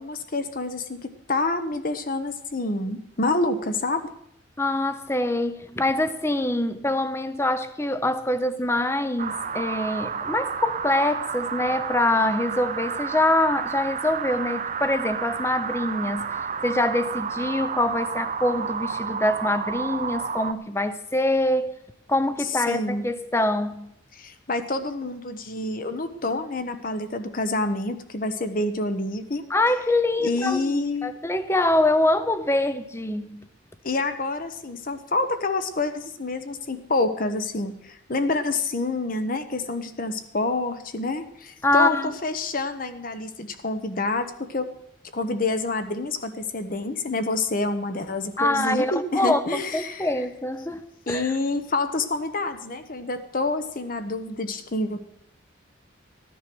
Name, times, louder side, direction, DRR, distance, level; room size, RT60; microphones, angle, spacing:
voice 1, 0.0-4.1 22.7-23.0 24.1-29.4 30.2-31.1 33.8-42.0 42.2-44.7 45.1-50.1 51.1-55.0, left 2 dB, 45° left, 1.0 m, -27 dB
voice 2, 4.6-21.7 22.1-23.9 29.5-33.5 41.6-42.1 48.4-51.3, left 1 dB, 15° left, 0.7 m, -24 dB
sound 1, 9.2-20.5, right 6 dB, 35° right, 0.5 m, -31 dB
14.5 x 10.0 x 6.1 m
head